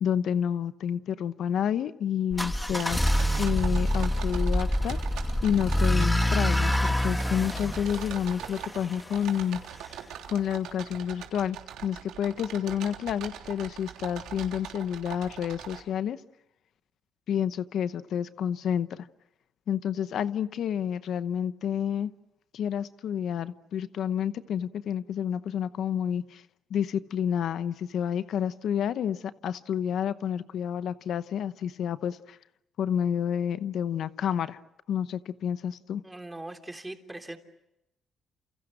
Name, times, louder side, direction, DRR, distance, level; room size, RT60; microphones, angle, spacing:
voice 1, 0.0-5.0 5.4-9.6 10.3-11.6 11.8-16.2 17.3-19.1 19.7-22.1 22.5-26.4 26.7-32.4 32.8-34.6 34.9-36.0, left 9 dB, 70° left, 0.9 m, -29 dB
sound 1, 2.3-9.2, left 1 dB, 5° left, 1.6 m, -26 dB
sound 2, 2.7-15.8, right 10 dB, 90° right, 3.4 m, -42 dB
voice 2, 36.0-37.4, right 2 dB, 15° right, 3.3 m, -40 dB
29.5 x 28.5 x 6.3 m
cardioid pair, 90°, 0 cm